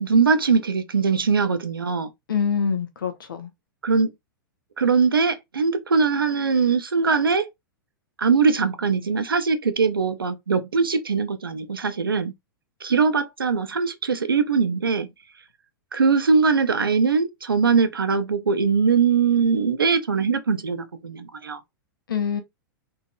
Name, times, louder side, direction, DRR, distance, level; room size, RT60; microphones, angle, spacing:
voice 1, 0.0-2.1 3.8-4.1 4.8-7.5 8.2-12.3 12.8-15.1 15.9-21.6, right 5 dB, 80° right, 0.7 m, -21 dB
voice 2, 2.3-3.5 22.1-22.4, left 6 dB, 70° left, 1.0 m, -25 dB
3.9 x 2.8 x 2.3 m
figure-of-eight pair, 100°, 12 cm